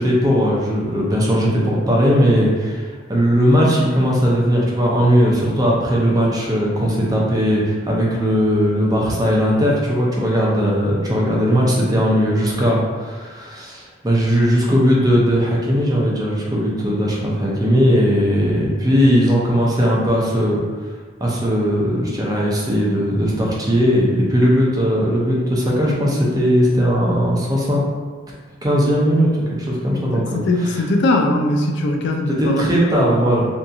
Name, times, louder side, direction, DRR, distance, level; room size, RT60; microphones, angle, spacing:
voice 1, 0.0-20.6 21.2-27.8 28.6-29.3 29.6-30.4 32.3-33.5, equal, 20° right, -4 dB, 0.5 m, -18 dB
voice 2, 30.1-32.7, left 1 dB, 65° left, 3 dB, 0.3 m, -20 dB
2.7 x 2.6 x 2.3 m, 1.4 s
head